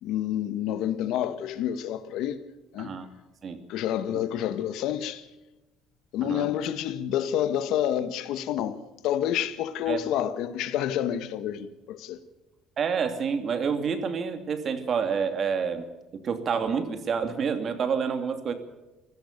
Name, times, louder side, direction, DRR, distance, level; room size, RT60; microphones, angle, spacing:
voice 1, 0.0-2.4 2.7-2.9 3.7-5.3 6.1-8.8 9.0-12.2, left 10 dB, 75° left, 1.7 m, -28 dB
voice 2, 12.8-15.9 16.1-18.5, right 6 dB, 40° right, 2.8 m, -28 dB
26.0 x 16.5 x 6.8 m
cardioid pair, 150°, 0 cm